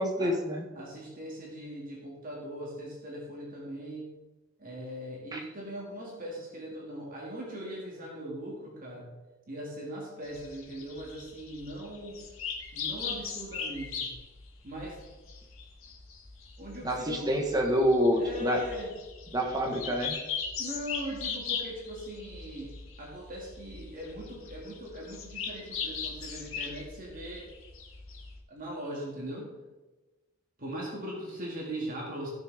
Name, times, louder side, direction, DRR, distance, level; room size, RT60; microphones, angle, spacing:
voice 1, 0.0-0.7 5.3-5.4 16.8-18.6 19.3-20.2, equal, 20° right, 1 dB, 1.5 m, -27 dB
voice 2, 0.7-4.1 4.6-9.1 9.5-12.3 12.7-14.1 14.6-15.0 16.6-17.3 18.2-18.9 20.6-27.5 28.5-29.5 30.6-32.3, equal, 45° right, -3 dB, 2.3 m, -40 dB
sound 1, 10.2-28.4, left 6 dB, 90° left, 1.5 m, -39 dB
15.5 x 6.5 x 3.6 m, 1.2 s
head